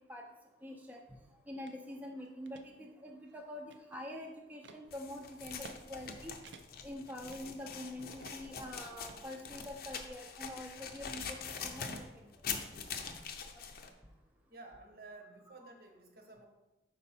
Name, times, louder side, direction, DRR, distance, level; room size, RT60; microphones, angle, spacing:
voice 1, 0.6-1.2 1.5-6.3 6.8-12.3 13.5-13.6 15.6-15.7, left 1 dB, 10° right, 1 dB, 0.5 m, -46 dB
sound 1, 1.7-1.8 2.2-2.7 3.2-4.1 4.6-4.8 5.4-5.8 6.1-6.2 6.4-6.9 7.3-7.9 8.2-8.6 9.1-9.9, right 4 dB, 85° right, 0.5 m, -55 dB
sound 2, 4.9-13.9, left 6 dB, 60° left, 0.6 m, -44 dB
voice 2, 14.5-16.5, right 3 dB, 60° right, 3 dB, 0.9 m, -53 dB
5.3 x 4.3 x 4.2 m, 1.0 s
head